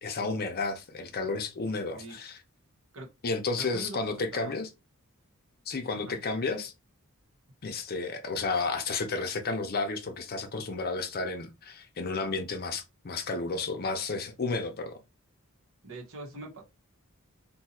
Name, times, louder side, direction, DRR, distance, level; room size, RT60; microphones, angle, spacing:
voice 1, 0.0-2.4 3.2-4.7 5.7-6.7 7.6-15.0, left 3 dB, 45° left, 0.6 m, -32 dB
voice 2, 3.6-4.5 5.9-6.2 15.8-16.6, right 2 dB, 60° right, 1.1 m, -43 dB
2.7 x 2.4 x 4.1 m
head